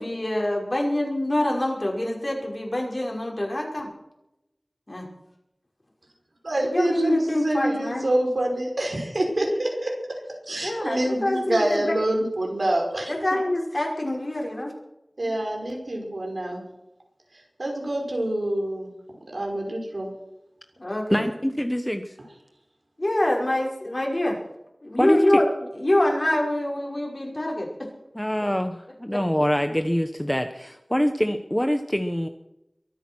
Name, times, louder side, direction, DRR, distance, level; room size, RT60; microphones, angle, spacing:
voice 1, 0.0-3.9 4.9-5.1 6.6-8.1 10.6-11.9 13.1-14.7 15.2-15.3 20.8-21.2 23.0-24.4 24.8-27.9 29.1-29.2 30.9-31.1, left 1 dB, 50° left, 0 dB, 5.6 m, -25 dB
voice 2, 6.4-13.1 15.2-16.6 17.3-18.9 19.3-20.1, right 1 dB, 80° right, 1 dB, 5.4 m, -26 dB
voice 3, 21.1-22.2 25.0-25.2 28.1-32.3, equal, 10° left, 7 dB, 1.1 m, -24 dB
23.0 x 9.1 x 6.2 m, 0.88 s
wide cardioid pair, 40°, 0 cm